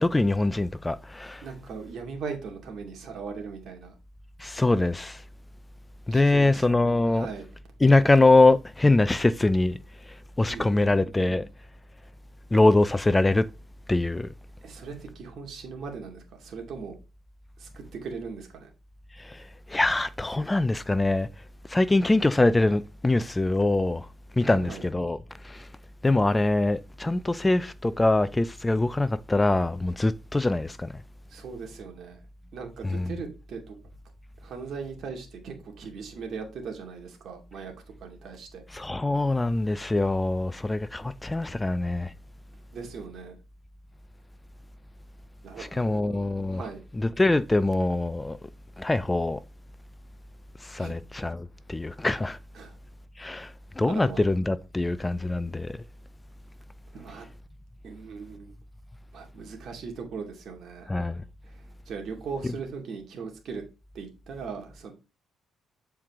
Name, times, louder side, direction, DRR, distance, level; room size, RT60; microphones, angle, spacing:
voice 1, 0.0-1.4 4.4-5.2 6.1-7.3 7.8-9.8 10.4-11.5 12.5-13.5 13.9-14.3 19.2-19.4 19.7-21.3 21.7-24.1 24.4-25.2 25.4-25.7 26.0-30.9 32.8-33.1 38.7-42.1 45.6-46.6 47.0-48.4 48.8-49.4 50.6-52.4 53.2-55.8 60.9-61.2 62.4-62.5, left 2 dB, 15° left, 0.4 m, -23 dB
voice 2, 1.4-3.9 6.1-6.8 7.0-7.5 10.5-11.0 14.6-17.0 17.6-18.7 24.4-24.8 31.3-32.2 32.5-33.8 34.4-37.7 38.0-38.6 42.7-43.4 45.4-46.8 50.8-51.0 52.5-52.8 53.9-54.2 56.9-57.3 57.8-58.5 59.1-60.9 61.5-63.6 63.9-64.9, right 5 dB, 60° right, 2.3 m, -39 dB
7.8 x 4.5 x 3.6 m
cardioid pair, 110°, 0 cm